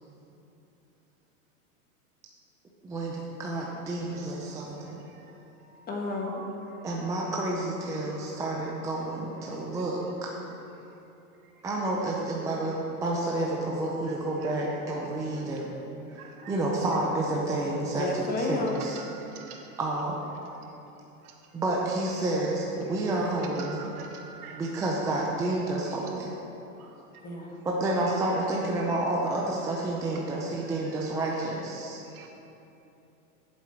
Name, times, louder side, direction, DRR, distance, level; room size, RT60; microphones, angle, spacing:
voice 1, 2.8-5.0 6.8-10.3 11.6-15.7 16.5-19.0 19.8-20.2 21.5-23.8 24.5-26.3 27.6-32.0, right 2 dB, 10° right, -3 dB, 0.4 m, -30 dB
voice 2, 5.9-6.4 17.9-18.8 27.2-27.6, left 2 dB, 20° left, -1 dB, 1.3 m, -31 dB
voice 3, 16.2-16.5 19.0-19.7 23.6-24.6 26.8-26.9 32.1-32.3, right 6 dB, 75° right, 2 dB, 1.7 m, -45 dB
12.0 x 7.5 x 4.4 m, 2.9 s
supercardioid pair, 145°, 44 cm